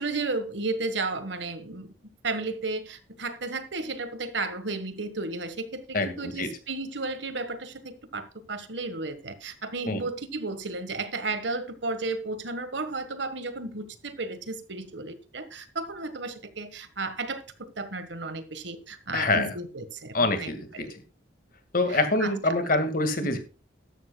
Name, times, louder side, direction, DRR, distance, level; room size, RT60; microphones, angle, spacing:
voice 1, 0.0-1.9 2.2-20.9 21.9-22.8 23.2-23.4, right 3 dB, 70° right, 1.6 m, -33 dB
voice 2, 5.9-6.5 9.9-10.0 19.1-19.5 20.1-21.0 21.7-23.4, left 2 dB, 50° left, 2.1 m, -25 dB
13.5 x 12.5 x 2.3 m
head